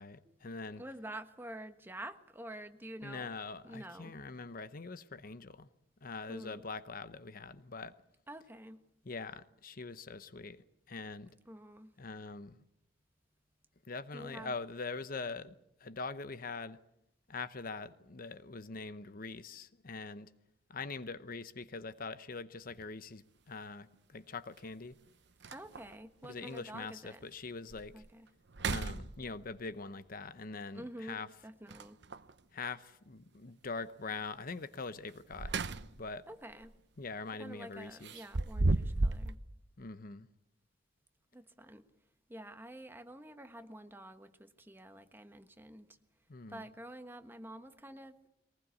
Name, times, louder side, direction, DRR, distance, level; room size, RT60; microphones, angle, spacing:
voice 1, 0.0-0.8 3.0-5.7 6.0-8.0 9.0-11.3 12.0-12.6 13.9-15.5 15.8-16.8 17.3-20.3 20.7-24.9 26.2-28.0 28.6-31.3 32.5-35.5 36.0-36.3 37.0-38.1 39.8-40.3 46.3-46.6, left 4 dB, 50° left, 0.8 m, -43 dB
voice 2, 0.8-3.3 3.6-4.2 6.3-6.6 8.3-8.8 11.5-11.9 14.1-14.5 25.5-27.2 27.9-28.3 30.7-32.0 36.3-36.7 37.4-39.4 41.3-41.8 42.3-45.9 46.5-48.1, right 1 dB, 10° right, 1.3 m, -48 dB
sound 1, 22.7-22.8 24.6-24.7 25.1-25.2 25.4-26.0 26.6-26.7 27.2-27.3 27.7-28.1 28.5-29.6 31.7-32.3 35.1-36.1 36.5-36.7 38.0-39.3, right 2 dB, 65° right, 0.9 m, -34 dB
22.5 x 19.5 x 8.4 m
head